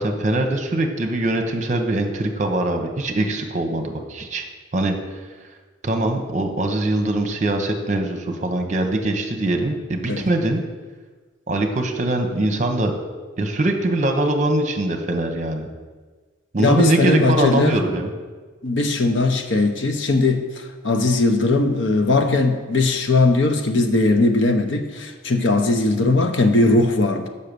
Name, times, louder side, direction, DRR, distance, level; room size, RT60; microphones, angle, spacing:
voice 1, 0.0-4.4 4.7-5.0 5.8-10.6 11.5-12.9 13.4-15.7 16.5-18.1, right 1 dB, 35° right, 4 dB, 0.9 m, -22 dB
voice 2, 16.6-17.8 18.6-20.4 20.8-27.3, left 2 dB, 65° left, 6 dB, 0.8 m, -19 dB
7.5 x 5.5 x 6.7 m, 1.4 s
head